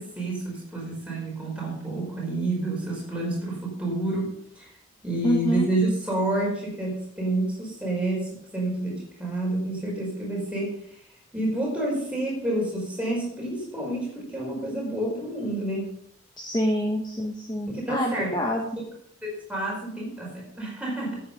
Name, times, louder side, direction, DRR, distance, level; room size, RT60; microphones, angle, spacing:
voice 1, 0.0-4.7 5.0-11.0 11.3-15.9 17.7-18.3 19.2-21.2, right 1 dB, 5° right, -4 dB, 5.0 m, -29 dB
voice 2, 5.2-5.7 16.4-18.7, equal, 20° left, 1 dB, 1.0 m, -26 dB
12.0 x 9.0 x 5.4 m, 0.70 s
head